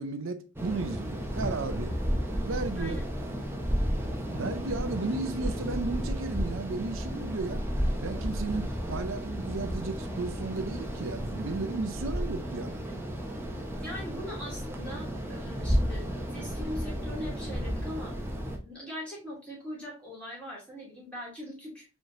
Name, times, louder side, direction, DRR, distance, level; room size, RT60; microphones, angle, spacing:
voice 1, 0.0-2.0 2.5-3.0 4.4-7.6 8.0-12.9, right 3 dB, 70° right, 0.6 m, -34 dB
sound 1, 0.6-18.6, equal, 10° right, 0.7 m, -33 dB
voice 2, 13.8-16.0 16.3-18.2 18.6-21.8, left 1 dB, 5° left, 2.5 m, -40 dB
4.7 x 3.2 x 2.6 m
head